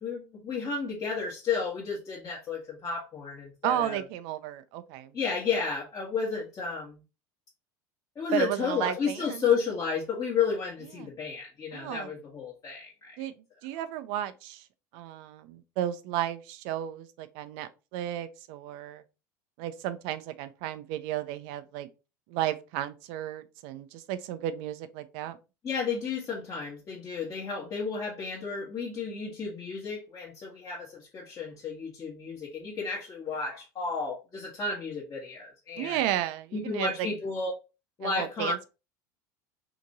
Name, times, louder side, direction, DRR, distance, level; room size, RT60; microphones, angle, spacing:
voice 1, 0.0-4.0 5.1-7.0 8.2-13.3 25.6-36.0 36.5-37.5 38.0-38.7, left 5 dB, 35° left, 1.1 m, -32 dB
voice 2, 3.6-5.1 8.3-9.5 11.0-11.1 11.7-12.1 13.2-13.3 13.6-14.7 14.9-19.0 19.6-21.9 22.3-25.4 35.8-37.1 38.0-38.7, right 12 dB, 65° right, 0.5 m, -33 dB
2.9 x 2.6 x 3.9 m
hypercardioid pair, 85°, 10 cm